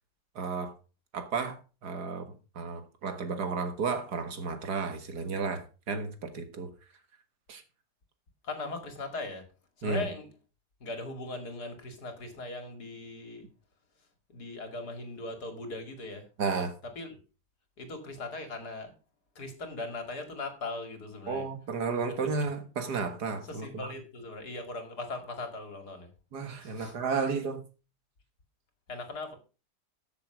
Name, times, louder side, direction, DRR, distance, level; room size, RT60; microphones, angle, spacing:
voice 1, 0.4-0.7 1.1-6.7 7.5-7.6 9.8-10.1 16.4-16.7 21.3-23.9 26.3-27.6, right 4 dB, 75° right, 2.2 m, -33 dB
voice 2, 8.4-9.5 9.8-10.3 10.8-13.5 14.3-16.3 17.0-17.2 17.8-18.9 19.4-21.5 23.4-26.1 26.6-26.9 28.9-29.4, left 2 dB, 70° left, 2.8 m, -39 dB
14.0 x 6.8 x 5.0 m
omnidirectional pair, 1.7 m